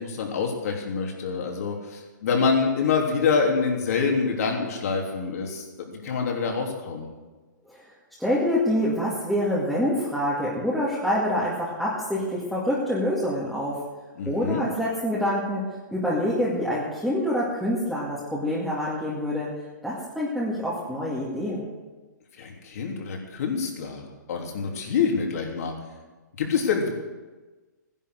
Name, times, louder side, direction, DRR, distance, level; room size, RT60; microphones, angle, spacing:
voice 1, 0.0-7.1 14.2-14.7 22.4-24.0 24.3-25.7 26.4-26.9, left 5 dB, 55° left, 1 dB, 3.5 m, -26 dB
voice 2, 8.2-13.8 14.3-19.5 19.8-21.7, left 1 dB, ahead, -9 dB, 2.3 m, -26 dB
15.5 x 11.0 x 6.6 m, 1.3 s
hypercardioid pair, 155°, 10 cm